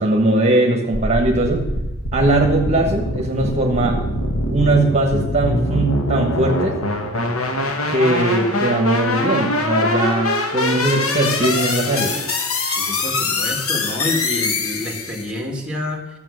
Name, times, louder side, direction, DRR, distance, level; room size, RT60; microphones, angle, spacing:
voice 1, 0.0-1.6 2.1-4.0 4.5-6.8 7.9-12.2, right 2 dB, 30° right, 1 dB, 1.3 m, -19 dB
sound 1, 0.9-15.3, left 2 dB, 80° left, 1.5 m, -23 dB
voice 2, 12.7-16.1, left 1 dB, 5° right, 1 dB, 1.9 m, -28 dB
13.5 x 7.4 x 6.4 m, 1.0 s
head